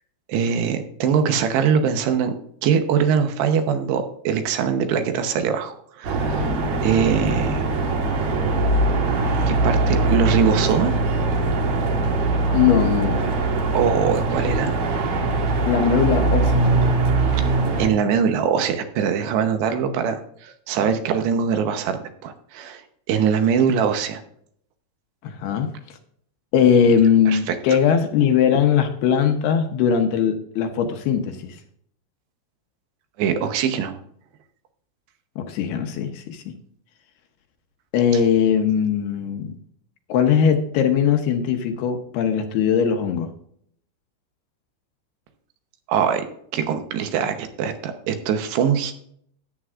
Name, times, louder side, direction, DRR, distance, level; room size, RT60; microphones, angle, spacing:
voice 1, 0.3-2.3 2.6-6.5 6.8-7.7 9.5-10.9 13.7-14.7 17.8-22.0 22.2-22.8 23.1-24.2 27.3-27.5 33.2-34.0 45.9-46.3 46.5-48.9, right 7 dB, 75° right, 7 dB, 3.0 m, -22 dB
sound 1, 6.0-17.9, right 2 dB, 55° right, 2.3 m, -21 dB
voice 2, 12.5-13.3 15.7-16.7 25.2-25.7 26.5-31.6 35.4-36.4 37.9-39.5 40.1-43.3, left 7 dB, 75° left, 5 dB, 2.7 m, -20 dB
14.0 x 9.9 x 2.5 m, 0.65 s
omnidirectional pair, 5.1 m